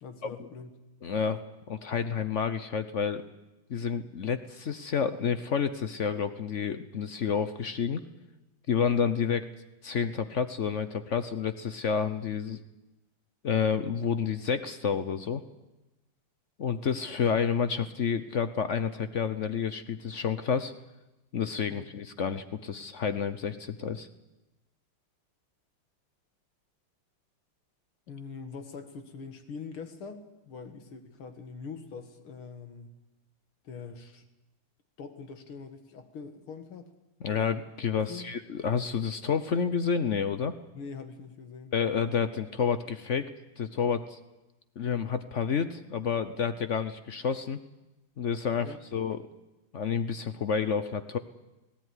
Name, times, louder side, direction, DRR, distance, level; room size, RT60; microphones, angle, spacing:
voice 1, 0.0-0.7 21.7-22.0 28.1-32.9 33.6-34.2 35.0-36.9 38.1-38.3 40.7-41.7 48.6-48.8, left 5 dB, 80° left, 8 dB, 2.7 m, -43 dB
voice 2, 1.0-1.4 1.7-3.2 3.7-8.0 8.7-9.5 9.8-12.6 13.4-15.4 16.6-20.7 21.3-24.1 37.2-40.5 41.7-43.3 43.6-44.2 44.8-47.6 48.2-49.2 49.7-51.2, left 6 dB, 60° left, 11 dB, 0.7 m, -29 dB
18.5 x 17.5 x 9.8 m, 1.0 s
omnidirectional pair, 2.3 m